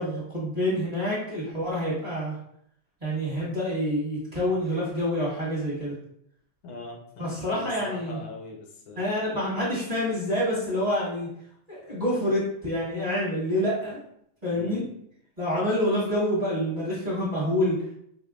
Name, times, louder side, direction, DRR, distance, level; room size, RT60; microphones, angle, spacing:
voice 1, 0.0-2.3 3.0-5.9 7.2-8.2 9.0-11.3 11.7-14.0 14.4-14.8 15.4-17.8, equal, 25° right, -8 dB, 1.1 m, -27 dB
voice 2, 6.6-9.1 14.5-14.9, left 3 dB, 90° left, 1 dB, 1.6 m, -40 dB
4.7 x 2.6 x 2.4 m, 0.71 s
omnidirectional pair, 2.2 m